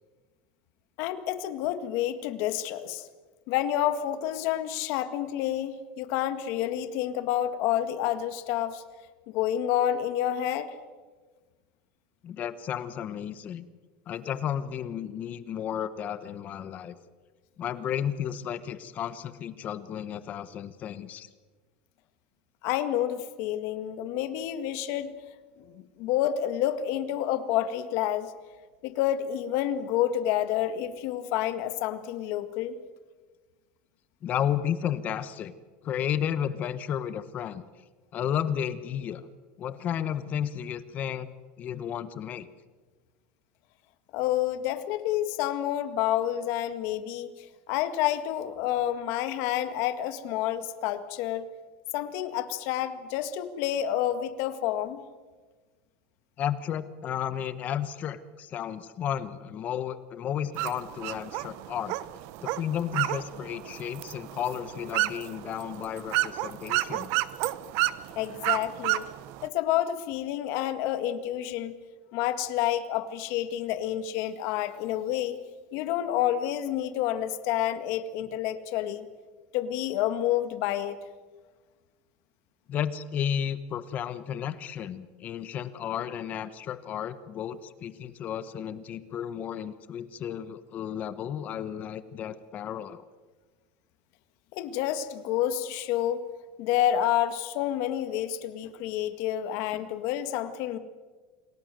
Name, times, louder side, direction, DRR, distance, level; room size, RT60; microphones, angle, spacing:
voice 1, 1.0-3.1 3.5-8.8 9.3-10.7 22.6-25.1 25.6-28.3 28.8-32.8 44.1-51.5 51.9-55.0 68.2-69.1 69.4-71.8 72.1-75.4 75.7-79.1 79.5-81.0 94.5-96.2 96.6-100.8, left 11 dB, 55° left, 10 dB, 1.8 m, -29 dB
voice 2, 12.2-13.6 14.1-16.9 17.6-21.3 34.2-35.5 35.8-37.6 38.1-39.2 39.6-41.3 41.6-42.5 56.4-62.0 62.4-67.1 82.7-93.0, left 9 dB, 30° left, 14 dB, 1.0 m, -33 dB
sound 1, 60.6-69.5, right 18 dB, 55° right, 0.8 m, -31 dB
28.0 x 18.5 x 7.7 m, 1.4 s
cardioid pair, 165°, 5 cm